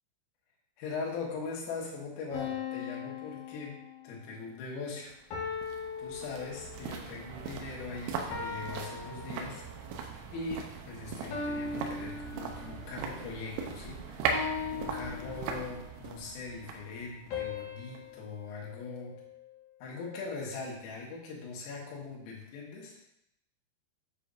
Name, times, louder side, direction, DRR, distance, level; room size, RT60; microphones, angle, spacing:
voice 1, 0.8-3.7 4.0-5.1 5.5-9.6 10.3-19.1 19.8-23.0, left 4 dB, 80° left, -3 dB, 4.3 m, -41 dB
sound 1, 2.3-4.3 5.3-7.0 8.3-9.9 11.3-13.0 14.3-15.9 17.3-19.6, left 5 dB, 65° left, 2.8 m, -39 dB
sound 2, 5.1-18.2 18.5-18.6, right 5 dB, 85° right, 3.4 m, -39 dB
9.4 x 7.2 x 2.6 m, 0.80 s
omnidirectional pair, 5.8 m